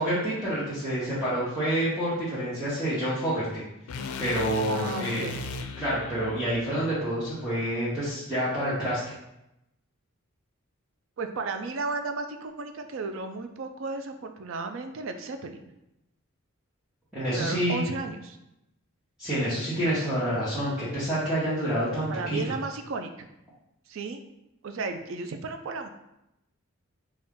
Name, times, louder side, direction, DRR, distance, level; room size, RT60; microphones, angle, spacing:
voice 1, 0.0-3.6 4.2-5.2 5.8-9.1 17.1-17.8 19.2-22.5, equal, 5° right, -13 dB, 1.0 m, -28 dB
sound 1, 3.9-8.1, left 3 dB, 90° left, 0.4 m, -38 dB
voice 2, 4.7-5.4 11.2-15.6 17.3-18.4 22.1-23.3 23.9-24.2 24.6-25.9, right 3 dB, 65° right, 7 dB, 0.4 m, -34 dB
4.2 x 2.4 x 3.6 m, 0.87 s
head